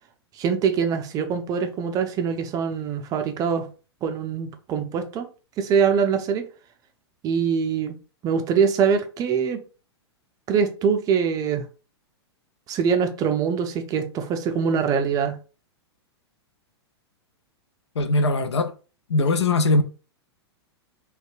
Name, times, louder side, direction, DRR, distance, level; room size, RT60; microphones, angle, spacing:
voice 1, 0.4-3.7 4.0-5.3 5.6-6.5 7.2-7.9 8.2-9.6 10.5-11.6 12.7-15.3, right 6 dB, 25° right, 0.4 m, -23 dB
voice 2, 18.0-18.7 19.1-19.8, left 2 dB, 85° left, 0.4 m, -20 dB
2.6 x 2.2 x 2.4 m
hypercardioid pair, 110°, 14 cm